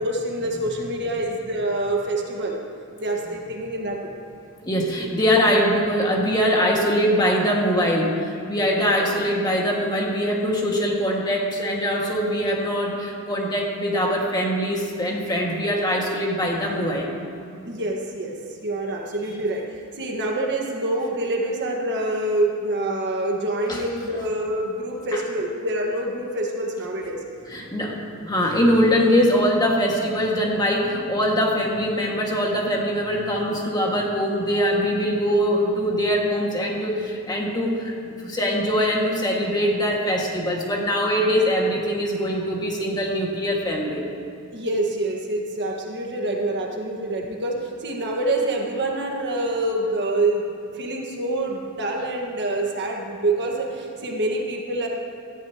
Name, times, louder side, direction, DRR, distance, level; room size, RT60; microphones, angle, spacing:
voice 1, 0.0-2.6 3.0-4.1 8.9-9.0 17.6-19.6 20.0-27.2 44.5-50.5 50.7-54.9, right 1 dB, 55° right, 0 dB, 1.5 m, -26 dB
voice 2, 4.7-17.1 23.7-23.8 25.1-25.2 27.5-44.1, equal, 20° left, -2 dB, 1.8 m, -22 dB
17.5 x 14.0 x 2.9 m, 2.4 s
head